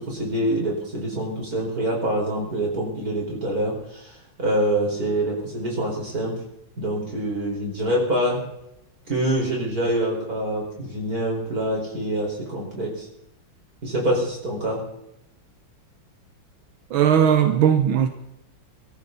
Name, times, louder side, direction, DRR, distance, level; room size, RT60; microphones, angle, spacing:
voice 1, 0.0-6.4 6.8-8.4 9.1-13.1 13.8-14.8, right 1 dB, 45° right, -1 dB, 5.6 m, -25 dB
voice 2, 16.9-18.1, right 9 dB, 85° right, 7 dB, 1.8 m, -18 dB
23.5 x 14.0 x 4.2 m, 0.81 s
omnidirectional pair, 2.2 m